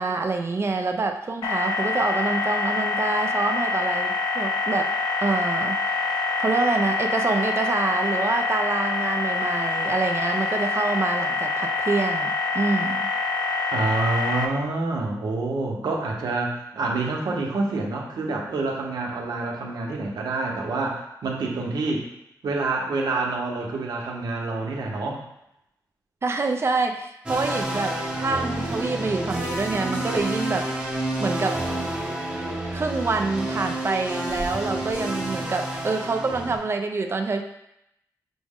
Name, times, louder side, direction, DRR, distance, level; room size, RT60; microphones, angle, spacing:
voice 1, 0.0-4.9 5.2-5.9 6.4-13.0 26.2-30.7 31.2-31.6 32.7-37.4, right 3 dB, 40° right, 5 dB, 0.4 m, -26 dB
sound 1, 1.4-14.5, left 3 dB, 85° left, 0.5 m, -26 dB
voice 2, 13.7-22.1 22.4-25.2, right 3 dB, 85° right, -1 dB, 0.8 m, -27 dB
sound 2, 27.3-36.6, right 1 dB, 15° right, 0.8 m, -29 dB
6.0 x 2.1 x 3.5 m, 0.82 s
wide cardioid pair, 90°, 7 cm